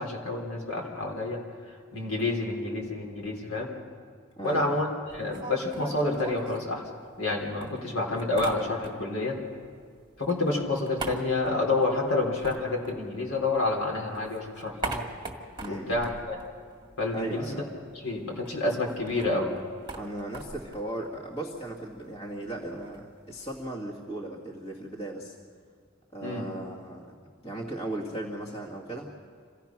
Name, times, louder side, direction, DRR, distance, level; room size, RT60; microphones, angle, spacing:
voice 1, 0.0-1.4 1.9-3.7 4.4-4.9 5.1-6.8 7.2-9.4 10.2-15.0 15.7-16.4 17.0-17.4 18.0-19.5 26.2-26.5, left 2 dB, 75° left, 0 dB, 3.6 m, -28 dB
voice 2, 4.4-4.8 15.6-16.1 17.1-17.6 20.0-25.4 26.1-27.2 27.4-29.1, right 1 dB, 30° left, -2 dB, 1.9 m, -37 dB
sound 1, 5.1-7.3 7.6-9.2 9.5-13.7 14.0-17.3 17.5-17.6 17.9-23.7, right 2 dB, 20° right, 1.8 m, -41 dB
27.0 x 16.5 x 5.9 m, 2.1 s
head